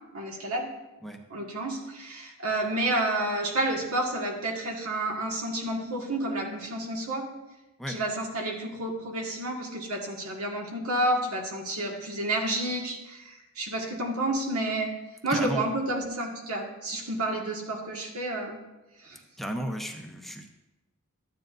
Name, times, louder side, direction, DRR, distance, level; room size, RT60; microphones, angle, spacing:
voice 1, 0.1-0.7 1.3-7.3 7.9-15.0 15.2-18.6 19.0-19.2, right 1 dB, 80° right, 0 dB, 1.8 m, -30 dB
voice 2, 15.3-15.7 19.4-20.5, equal, ahead, 3 dB, 0.7 m, -34 dB
13.5 x 9.3 x 2.6 m, 1.0 s
head